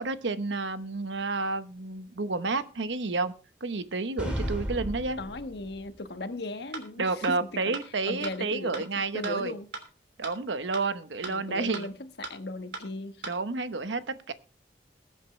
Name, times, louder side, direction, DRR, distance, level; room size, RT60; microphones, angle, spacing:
voice 1, 0.0-3.3 3.6-5.2 7.0-9.5 10.2-11.9 13.3-14.3, right 3 dB, 80° right, 1.0 m, -30 dB
sound 1, 4.2-5.8, equal, 5° right, 2.6 m, -33 dB
voice 2, 5.2-7.8 8.1-9.7 11.3-13.2, left 2 dB, 65° left, 1.3 m, -37 dB
sound 2, 6.7-6.8 7.2-7.3 7.7-7.8 8.2-8.3 8.7-8.8 9.2-9.3 9.7-9.8 10.2-10.3 10.7-10.8 11.2-11.3 11.7-11.8 12.2-12.3 12.7-12.8 13.2-13.3, right 3 dB, 65° right, 3.1 m, -36 dB
21.0 x 8.1 x 3.2 m
head